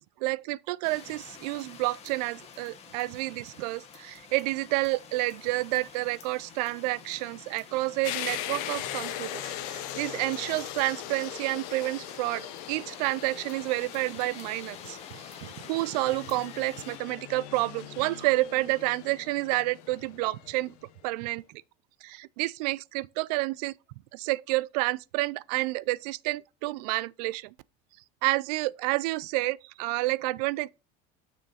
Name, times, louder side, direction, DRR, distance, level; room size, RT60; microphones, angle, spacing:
voice 1, 0.2-20.7 21.0-21.6 22.0-23.7 24.1-27.5 28.2-30.7, right 20 dB, 85° right, 0.4 m, -30 dB
sound 1, 0.8-17.0, left 7 dB, 30° left, 1.3 m, -50 dB
dash turboprop plane turning off motor, 8.0-20.7, left 12 dB, 80° left, 1.0 m, -40 dB
6.4 x 6.4 x 4.1 m
cardioid pair, 160°, 20 cm